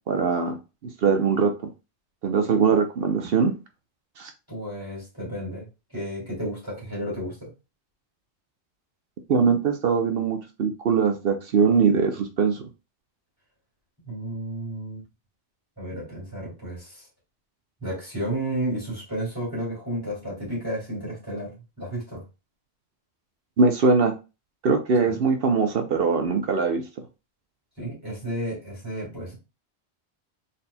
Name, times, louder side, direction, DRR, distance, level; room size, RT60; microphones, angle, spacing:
voice 1, 0.1-0.6 0.8-1.5 2.2-3.5 4.2-4.3 9.3-12.6 23.6-24.1 24.6-26.8, right 5 dB, 60° right, 0.8 m, -21 dB
voice 2, 4.5-5.7 5.9-7.5 14.1-15.0 15.8-17.0 17.8-21.5 21.8-22.2 25.1-25.2 27.8-29.4, right 1 dB, 20° right, 2.6 m, -32 dB
4.0 x 4.0 x 2.2 m
omnidirectional pair, 1.1 m